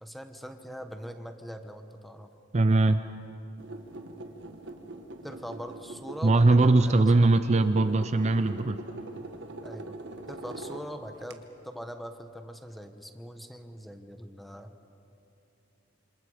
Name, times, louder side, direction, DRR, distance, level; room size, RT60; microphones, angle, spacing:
voice 1, 0.0-2.3 5.2-7.4 9.6-9.9 10.3-14.7, equal, ahead, 7 dB, 1.1 m, -42 dB
voice 2, 2.5-3.0 6.2-8.8, right 2 dB, 35° right, 10 dB, 0.5 m, -21 dB
sound 1, 3.6-11.3, right 2 dB, 65° right, 1.4 m, -42 dB
27.0 x 26.5 x 5.0 m, 2.8 s
head